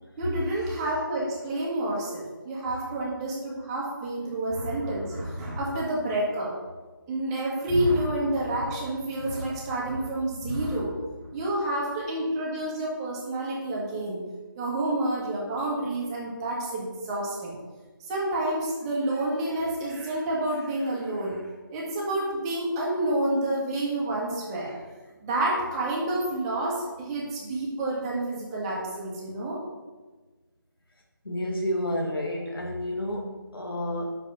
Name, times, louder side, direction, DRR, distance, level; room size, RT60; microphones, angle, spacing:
voice 1, 0.2-6.5 7.1-10.9 11.3-14.2 14.6-17.5 18.1-21.4 21.7-24.8 25.2-29.6, right 1 dB, 15° right, -4 dB, 1.5 m, -29 dB
voice 2, 31.2-34.2, left 1 dB, 90° left, -1 dB, 1.5 m, -30 dB
6.3 x 5.3 x 6.8 m, 1.3 s
figure-of-eight pair, 160°, 12 cm